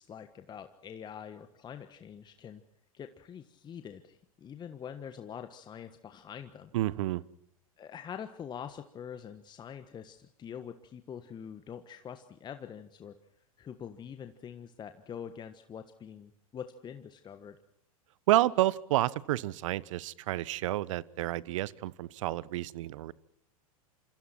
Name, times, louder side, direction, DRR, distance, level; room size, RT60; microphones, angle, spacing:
voice 1, 0.0-2.6 2.9-6.7 7.8-13.2 13.6-17.6, left 8 dB, 25° left, 8 dB, 1.4 m, -45 dB
voice 2, 6.7-7.2 18.3-23.1, right 15 dB, 55° right, 21 dB, 1.0 m, -29 dB
27.5 x 27.0 x 4.5 m, 0.68 s
figure-of-eight pair, 95°, 19 cm